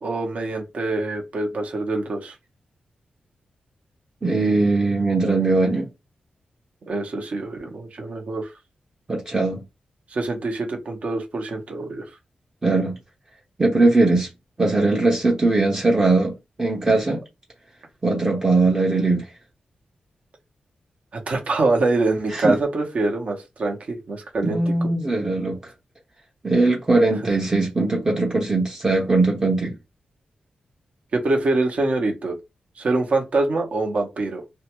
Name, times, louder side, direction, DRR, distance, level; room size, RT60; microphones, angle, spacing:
voice 1, 0.0-2.3 6.9-8.5 10.1-12.0 21.1-24.9 31.1-32.4 32.8-34.4, right 2 dB, 55° right, 0.9 m, -24 dB
voice 2, 4.2-5.9 9.1-9.6 12.6-13.0 13.6-14.3 14.6-17.2 18.0-19.2 22.3-22.6 24.4-25.6 26.4-29.7, right 2 dB, 25° right, 0.7 m, -20 dB
2.6 x 2.2 x 2.9 m
wide cardioid pair, 120°, 3 cm